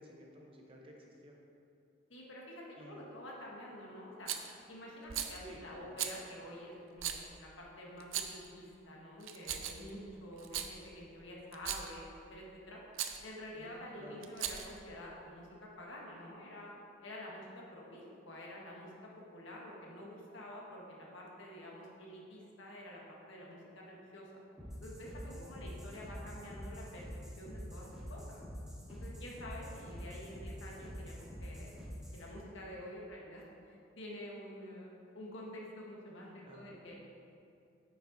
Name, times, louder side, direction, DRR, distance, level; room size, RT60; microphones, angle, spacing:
voice 1, 0.0-1.4 2.8-3.0 5.4-6.0 13.5-14.2 25.3-25.7 26.1-26.3 36.4-36.7, equal, 25° right, -1 dB, 0.9 m, -54 dB
voice 2, 2.1-4.3 4.7-12.8 13.2-16.7 17.0-24.3 24.8-27.1 27.4-28.4 28.9-31.7 32.1-37.0, equal, 70° left, -3 dB, 1.5 m, -48 dB
Rattle, 4.3-4.5 5.1-5.4 6.0-6.2 7.0-7.2 8.0-8.5 9.2-9.9 10.4-10.7 11.5-11.9 12.9-13.2 14.2-14.8, right 9 dB, 80° right, 0.6 m, -38 dB
sound 1, 24.6-32.3, equal, 5° right, 2.0 m, -47 dB
8.9 x 5.5 x 4.1 m, 2.6 s
head